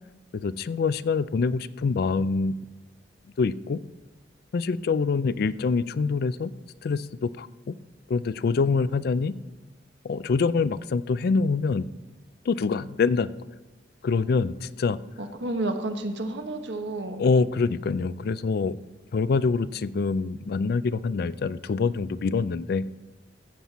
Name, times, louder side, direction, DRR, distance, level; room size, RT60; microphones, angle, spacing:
voice 1, 0.3-2.5 3.4-3.8 4.5-6.5 6.8-7.7 8.1-9.3 10.0-11.9 12.5-13.3 14.0-15.0 17.2-18.8 19.1-22.8, left 4 dB, 60° left, 16 dB, 0.4 m, -25 dB
voice 2, 15.2-17.2, right 2 dB, 75° right, 6 dB, 1.1 m, -30 dB
15.0 x 7.4 x 4.1 m, 1.1 s
head